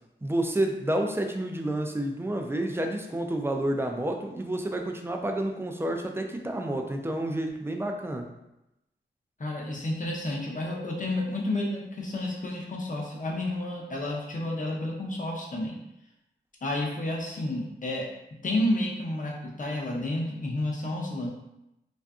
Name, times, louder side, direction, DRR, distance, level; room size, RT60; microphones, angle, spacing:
voice 1, 0.2-8.3, right 1 dB, 10° right, 3 dB, 0.3 m, -29 dB
voice 2, 9.4-15.8 16.6-18.1 18.4-21.3, left 1 dB, 40° left, -2 dB, 0.6 m, -30 dB
2.5 x 2.5 x 2.3 m, 0.88 s
cardioid pair, 60°, 20 cm